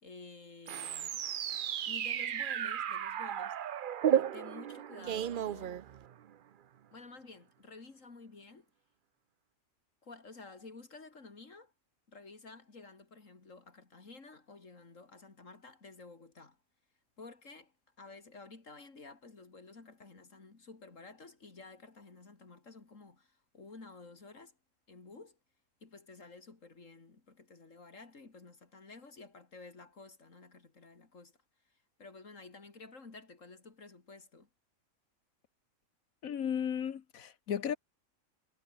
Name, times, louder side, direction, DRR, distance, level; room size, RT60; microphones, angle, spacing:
voice 1, 0.0-1.2 1.8-3.6 4.1-5.8 6.9-8.7 10.0-11.7 12.1-16.6 17.2-24.6 24.9-25.4 25.8-31.3 32.0-34.5, left 3 dB, 65° left, 3.2 m, -52 dB
sound 1, 0.7-6.3, right 9 dB, 55° right, 0.6 m, -34 dB
voice 2, 36.2-37.8, left 8 dB, 90° left, 1.6 m, -34 dB
omnidirectional pair, 1.4 m